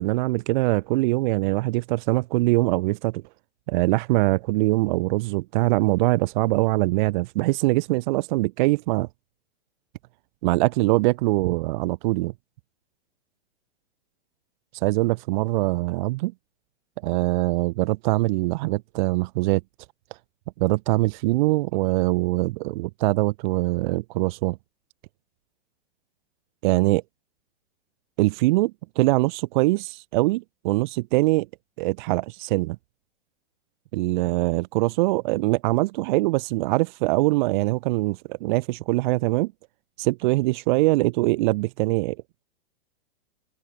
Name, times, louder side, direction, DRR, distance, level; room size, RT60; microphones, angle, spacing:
voice 1, 0.0-3.2 3.7-9.1 10.4-12.3 14.8-16.3 17.0-19.6 20.6-24.6 26.6-27.0 28.2-31.5 31.8-32.8 33.9-39.5 40.0-42.2, right 21 dB, 50° right, 0.9 m, -23 dB
open air
hypercardioid pair, 125°, 31 cm